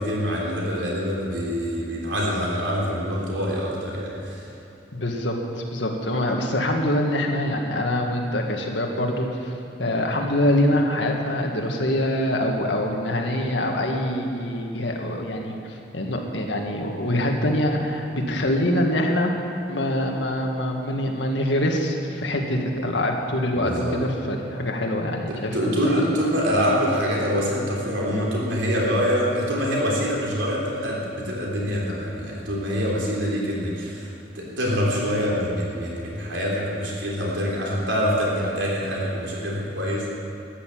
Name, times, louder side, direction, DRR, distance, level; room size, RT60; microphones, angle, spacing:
voice 1, 0.0-4.4 23.6-24.0 25.3-34.1 34.4-40.1, equal, 80° right, -4 dB, 3.4 m, -25 dB
voice 2, 4.9-5.3 5.7-9.5 9.8-19.3 19.7-26.0, left 1 dB, 75° left, 1 dB, 1.8 m, -24 dB
13.5 x 10.5 x 7.6 m, 2.9 s
head